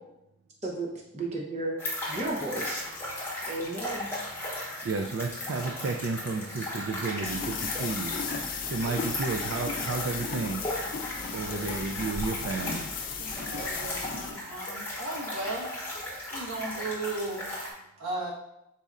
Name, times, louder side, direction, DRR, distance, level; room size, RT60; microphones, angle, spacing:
voice 1, 1.1-1.8 2.1-2.8 3.5-4.0, right 2 dB, 35° right, -2 dB, 0.7 m, -33 dB
sound 1, 1.8-17.7, left 1 dB, 10° left, 0.9 m, -37 dB
voice 2, 4.7-10.6 11.3-12.9, right 4 dB, 65° right, 3 dB, 0.3 m, -32 dB
sound 2, 7.2-14.3, left 5 dB, 45° left, 0.5 m, -35 dB
voice 3, 13.2-15.7 16.2-17.5 18.0-18.3, right 2 dB, 85° right, -5 dB, 1.3 m, -36 dB
5.2 x 4.1 x 2.4 m, 0.87 s
head